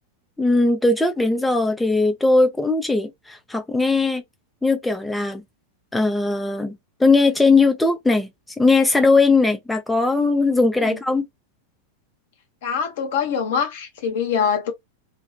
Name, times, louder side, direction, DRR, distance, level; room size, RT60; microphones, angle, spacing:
voice 1, 0.4-4.2 4.6-5.4 5.9-8.3 8.6-11.2, left 3 dB, 5° left, 0.5 m, -19 dB
voice 2, 12.6-14.7, left 7 dB, 55° left, 0.8 m, -24 dB
2.6 x 2.3 x 2.2 m
figure-of-eight pair, 90°, 0 cm